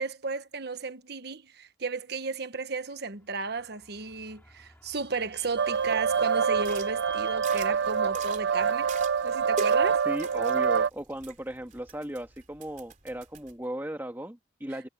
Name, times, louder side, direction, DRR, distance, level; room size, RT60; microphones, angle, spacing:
voice 1, 0.0-8.9 9.2-10.0, right 4 dB, 60° right, 1.2 m, -34 dB
Vehicle / Squeak, 3.5-9.1, right 1 dB, 10° left, 5.5 m, -50 dB
sound 1, 5.6-10.9, right 6 dB, 80° right, 0.6 m, -26 dB
sound 2, 6.5-13.5, right 4 dB, 45° right, 3.5 m, -44 dB
voice 2, 10.1-14.9, right 1 dB, 10° right, 1.8 m, -36 dB
head